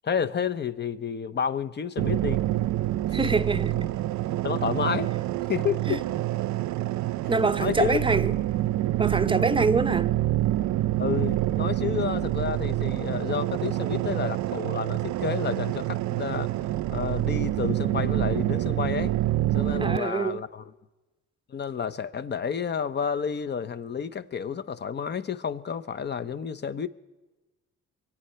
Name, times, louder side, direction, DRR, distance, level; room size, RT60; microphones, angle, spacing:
voice 1, 0.0-2.4 3.1-3.2 4.4-5.1 5.5-6.0 7.6-8.0 11.0-16.5 16.9-19.1 19.5-20.7 21.5-26.9, left 7 dB, 35° left, 0.7 m, -30 dB
sound 1, 2.0-20.0, right 15 dB, 70° right, 0.4 m, -27 dB
voice 2, 3.1-3.9 5.9-6.0 7.3-8.3 9.0-10.1 19.8-20.4, right 4 dB, 15° right, 0.7 m, -25 dB
23.5 x 8.6 x 5.7 m
cardioid pair, 90°, 30 cm